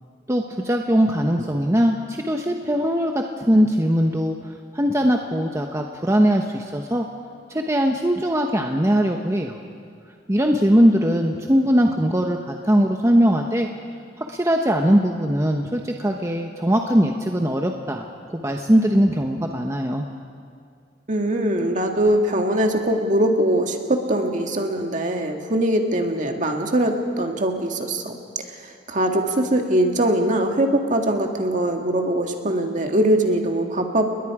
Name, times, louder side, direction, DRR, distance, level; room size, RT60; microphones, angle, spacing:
voice 1, 0.3-7.1 7.5-9.6 10.3-13.7 14.3-20.0, equal, 15° right, 2 dB, 1.0 m, -20 dB
voice 2, 21.1-28.2 28.5-34.1, right 1 dB, 45° right, 3 dB, 2.0 m, -22 dB
29.5 x 21.0 x 4.9 m, 2.2 s
head